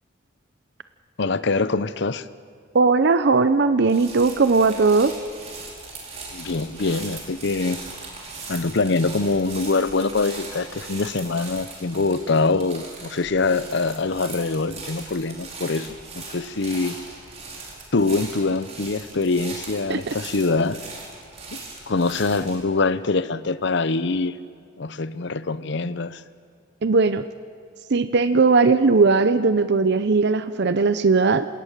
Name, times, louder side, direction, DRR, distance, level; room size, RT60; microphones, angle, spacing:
voice 1, 1.2-2.2 6.3-7.8 8.5-17.0 17.9-20.8 21.5-21.6 21.9-24.4 24.8-26.2, left 3 dB, 65° left, 14 dB, 0.8 m, -24 dB
voice 2, 2.7-5.1 19.9-20.2 26.8-27.2 27.9-31.5, right 4 dB, 60° right, 11 dB, 0.6 m, -18 dB
sound 1, 3.8-22.6, right 3 dB, 35° right, 4.8 m, -39 dB
27.5 x 18.0 x 6.7 m, 2.3 s
head